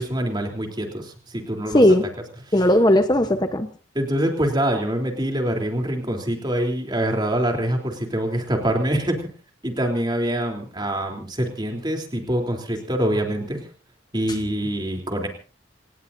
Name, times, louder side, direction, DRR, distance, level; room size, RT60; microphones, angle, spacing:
voice 1, 0.0-1.8 2.5-2.6 4.0-9.3 9.6-13.7 14.1-15.3, right 1 dB, 20° right, 3 dB, 3.6 m, -25 dB
voice 2, 1.7-2.0 2.5-3.7, left 1 dB, 20° left, 7 dB, 1.1 m, -17 dB
27.5 x 19.0 x 2.8 m, 0.38 s
head